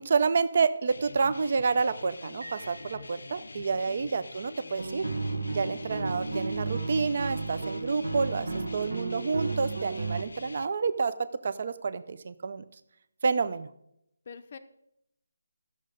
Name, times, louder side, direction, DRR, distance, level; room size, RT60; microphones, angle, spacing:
voice 1, 0.0-5.1 5.5-11.1 11.4-12.6 13.2-13.7, right 5 dB, 35° right, 13 dB, 0.4 m, -29 dB
sound 1, 0.9-10.7, left 3 dB, 70° left, 0.6 m, -45 dB
Piano, 2.4-3.9, right 1 dB, 85° right, 1.5 m, -49 dB
voice 2, 3.9-4.2 14.3-14.6, left 6 dB, 30° left, 9 dB, 0.6 m, -46 dB
sound 2, 4.8-10.2, right 3 dB, 65° right, 1.2 m, -33 dB
13.5 x 6.5 x 5.0 m, 0.80 s
hypercardioid pair, 175°, 0 cm